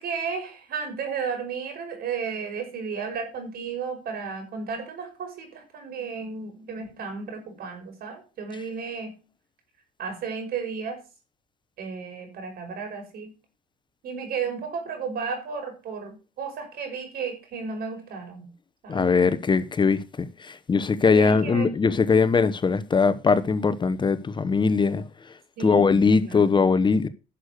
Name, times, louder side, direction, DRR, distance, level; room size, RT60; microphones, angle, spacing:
voice 1, 0.0-9.1 10.0-11.0 11.8-13.3 14.0-18.5 18.8-19.1 21.1-21.7 25.6-26.6, right 5 dB, 65° right, 5.4 m, -33 dB
voice 2, 18.9-20.0 20.7-25.0 25.6-27.1, left 5 dB, 25° left, 0.9 m, -20 dB
11.0 x 6.6 x 6.4 m
cardioid pair, 110°, 17 cm